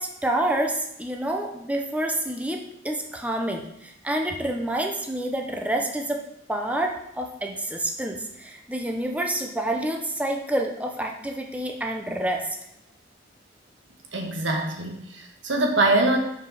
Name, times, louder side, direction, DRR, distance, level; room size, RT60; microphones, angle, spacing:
voice 1, 0.0-6.2 6.5-12.5, right 1 dB, 10° right, 2 dB, 0.7 m, -28 dB
voice 2, 14.1-16.2, right 2 dB, 85° right, 2 dB, 1.5 m, -23 dB
7.1 x 5.1 x 5.6 m, 0.78 s
head